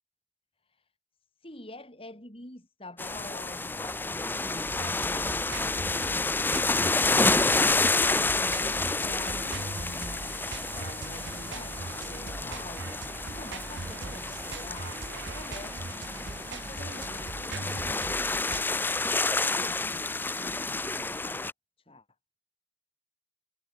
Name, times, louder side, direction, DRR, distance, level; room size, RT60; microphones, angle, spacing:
voice 1, 1.4-7.4 8.1-10.5 10.7-18.9 19.4-21.5 21.9-22.0, left 1 dB, 30° left, 5.6 m, -46 dB
sound 1, 3.0-21.5, left 3 dB, 10° left, 0.5 m, -29 dB
sound 2, 3.7-17.3, right 1 dB, 25° right, 7.6 m, -49 dB
sound 3, 4.6-18.6, right 3 dB, 80° right, 0.9 m, -40 dB
head